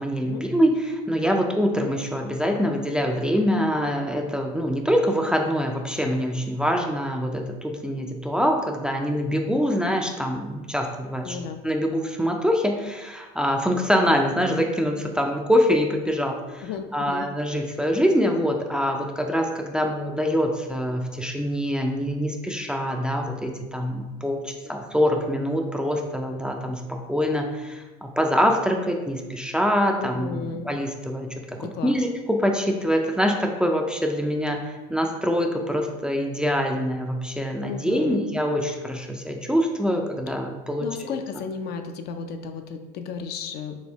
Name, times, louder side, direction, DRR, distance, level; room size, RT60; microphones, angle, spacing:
voice 1, 0.0-11.4 11.6-16.6 16.9-34.6 34.9-41.2, equal, 5° right, 2 dB, 0.4 m, -24 dB
voice 2, 11.2-11.6 16.6-17.3 24.6-24.7 30.0-30.7 31.6-32.0 37.6-38.2 40.8-43.8, left 6 dB, 55° left, 6 dB, 0.5 m, -34 dB
4.3 x 2.6 x 3.5 m, 1.2 s
supercardioid pair, 90°, 20 cm